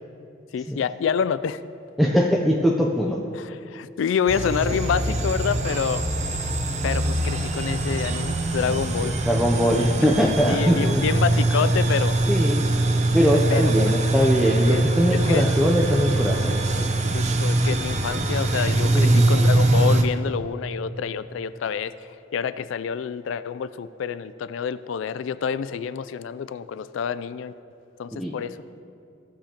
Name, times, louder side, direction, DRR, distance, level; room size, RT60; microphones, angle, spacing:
voice 1, 0.5-1.6 3.3-6.1 6.8-9.2 9.7-9.9 10.5-12.1 13.5-13.7 14.7-14.8 15.1-15.5 17.1-21.9 22.3-27.5 28.0-28.6, left 7 dB, 80° left, 15 dB, 0.3 m, -27 dB
voice 2, 2.0-3.2 9.3-11.0 12.3-12.6 13.1-16.6 18.9-19.3 28.1-28.4, equal, ahead, -2 dB, 0.5 m, -21 dB
sound 1, 4.3-20.0, right 2 dB, 35° right, 0.7 m, -23 dB
16.0 x 7.1 x 2.9 m, 2.7 s
head